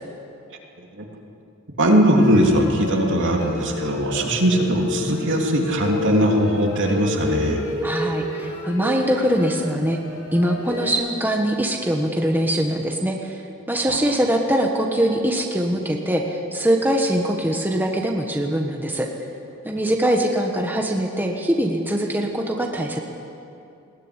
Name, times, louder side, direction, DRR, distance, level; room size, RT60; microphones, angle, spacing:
voice 1, 1.8-7.6 13.9-14.0, equal, 60° right, 0 dB, 3.1 m, -19 dB
sound 1, 2.1-10.9, left 2 dB, 65° left, 7.3 m, -31 dB
voice 2, 7.8-10.0 10.3-13.4 13.7-19.1 19.6-23.0, right 1 dB, 10° right, 1 dB, 1.4 m, -22 dB
20.5 x 18.0 x 9.8 m, 2.7 s
head